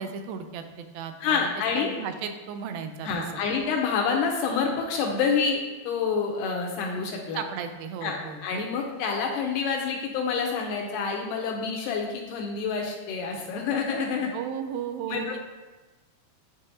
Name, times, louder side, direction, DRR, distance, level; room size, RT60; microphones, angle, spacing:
voice 1, 0.0-3.4 7.3-8.4 14.3-15.3, right 7 dB, 90° right, 7 dB, 2.3 m, -35 dB
voice 2, 1.2-1.9 3.0-7.4 8.0-14.3 15.1-15.4, left 5 dB, 80° left, 1 dB, 2.0 m, -28 dB
10.0 x 3.6 x 2.7 m, 1.2 s
omnidirectional pair, 4.1 m